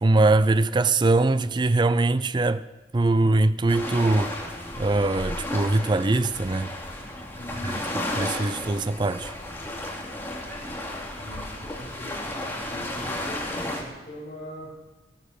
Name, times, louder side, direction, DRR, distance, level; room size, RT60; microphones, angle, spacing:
voice 1, 0.0-2.6 2.9-4.3 4.8-6.7 7.6-9.3, right 2 dB, 25° right, 0.4 m, -22 dB
sound 1, 3.7-13.8, left 1 dB, 15° left, 2.6 m, -33 dB
voice 2, 7.3-8.0 11.2-14.7, left 1 dB, 40° left, 5.5 m, -41 dB
16.0 x 13.0 x 6.6 m
head